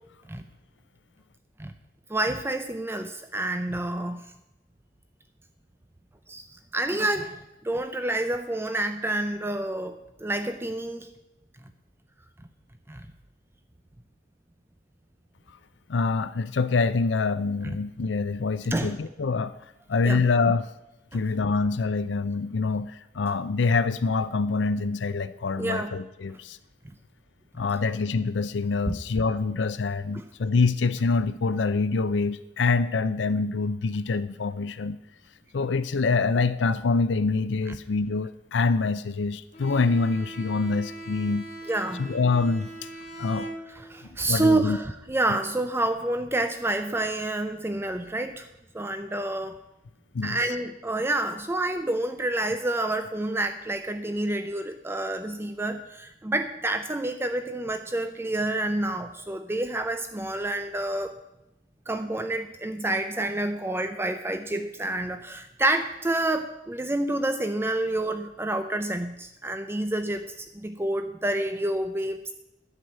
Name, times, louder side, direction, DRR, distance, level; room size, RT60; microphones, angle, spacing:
voice 1, 2.1-4.2 6.3-7.4 7.6-11.1 12.9-13.1 17.6-17.8 18.7-18.9 20.0-20.2 25.6-25.9 28.9-29.0 30.1-30.2 37.7-37.8 41.7-42.0 43.8-48.5 48.7-49.6 50.2-61.2 61.9-72.3, right 1 dB, 15° right, 8 dB, 0.5 m, -28 dB
voice 2, 15.9-20.7 21.1-26.6 27.6-35.0 35.5-41.5 42.0-42.7 43.2-43.5 44.3-44.8 50.1-50.4, left 4 dB, 85° left, 13 dB, 0.5 m, -25 dB
Bowed string instrument, 39.5-44.1, right 2 dB, 35° left, 2.8 m, -41 dB
11.0 x 6.3 x 8.9 m, 0.92 s
head